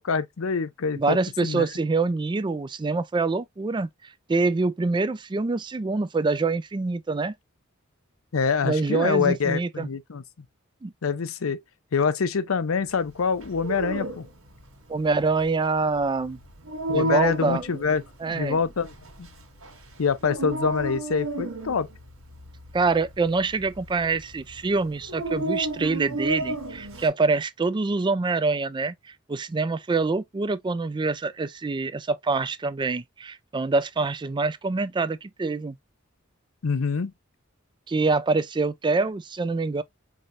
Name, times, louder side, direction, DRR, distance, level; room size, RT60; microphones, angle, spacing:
voice 1, 0.0-1.7 8.3-10.2 11.0-11.6 11.9-14.3 16.9-19.3 20.0-21.9 36.6-37.1, left 5 dB, 90° left, 0.6 m, -25 dB
voice 2, 1.0-3.9 4.3-7.3 8.6-9.9 10.8-10.9 14.9-16.4 16.9-17.6 18.2-18.6 22.7-29.0 29.3-35.8 37.9-39.8, right 3 dB, 20° right, 0.4 m, -25 dB
Dog, 13.3-27.1, right 1 dB, 85° right, 1.6 m, -33 dB
4.8 x 2.8 x 2.5 m
head